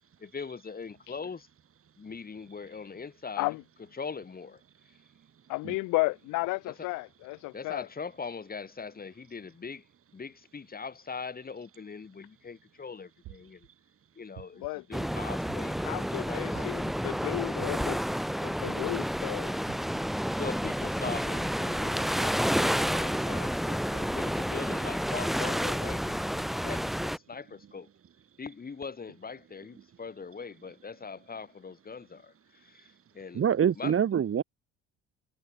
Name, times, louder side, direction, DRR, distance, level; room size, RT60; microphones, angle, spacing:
voice 1, 0.2-1.5 2.0-3.5 3.9-4.6 6.6-6.9 7.5-9.8 10.1-13.7 14.1-17.0 20.3-27.9 28.4-33.4 33.8-33.9, left 5 dB, 30° left, 3.0 m, -41 dB
voice 2, 5.5-7.9 14.6-14.8 15.8-18.0 18.4-19.5, left 23 dB, 80° left, 4.7 m, -33 dB
sound 1, 13.2-13.7 14.4-14.8 15.5-15.9 16.5-16.9 17.6-18.0 18.7-19.0 19.7-20.0, right 20 dB, 75° right, 3.6 m, -49 dB
sound 2, 14.9-27.2, equal, ahead, 3.7 m, -30 dB
voice 3, 33.3-34.4, right 8 dB, 45° right, 2.6 m, -25 dB
supercardioid pair, 75°, 31 cm